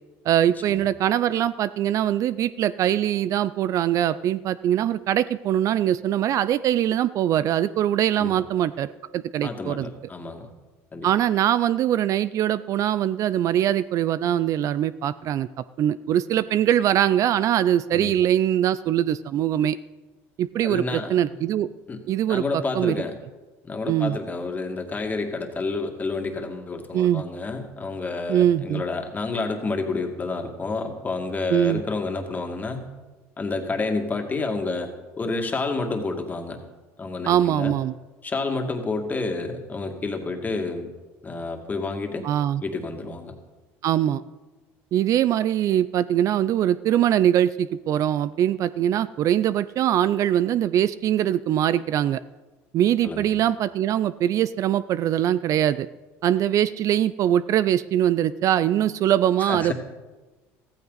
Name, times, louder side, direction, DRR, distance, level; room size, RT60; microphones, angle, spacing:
voice 1, 0.3-9.9 11.0-15.5 15.8-19.8 20.4-21.7 22.1-23.0 23.9-24.2 26.9-27.2 28.3-28.8 31.5-31.8 37.3-37.9 42.2-42.6 43.8-44.2 44.9-52.2 52.7-55.9 56.2-59.7, right 11 dB, 50° right, 16 dB, 0.4 m, -22 dB
voice 2, 9.4-10.5 10.9-11.1 17.9-18.1 20.6-21.4 21.9-22.0 22.3-23.1 23.6-32.9 33.4-36.6 37.0-37.8 38.2-40.9 41.2-42.3 42.6-43.3 53.0-53.3 59.4-59.7, left 3 dB, 25° left, 3 dB, 2.2 m, -29 dB
15.0 x 14.5 x 4.0 m, 1.2 s
supercardioid pair, 90°, 7 cm